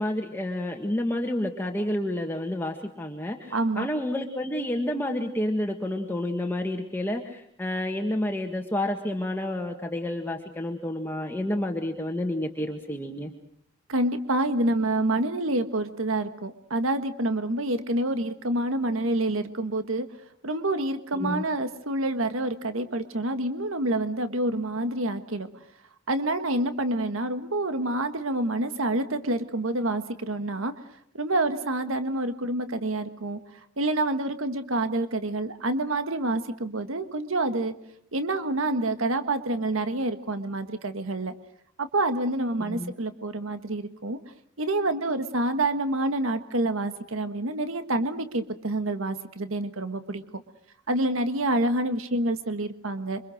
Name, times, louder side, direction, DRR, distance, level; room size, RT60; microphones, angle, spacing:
voice 1, 0.0-13.3 21.2-21.5 42.6-42.9, left 1 dB, 10° left, 2 dB, 1.7 m, -29 dB
voice 2, 3.5-3.9 13.9-20.1 20.4-25.5 26.1-30.7 31.1-37.7 38.1-41.3 41.8-44.2 44.6-50.4 50.9-53.2, right 2 dB, 85° right, 10 dB, 1.5 m, -27 dB
27.0 x 25.0 x 6.4 m, 0.68 s
head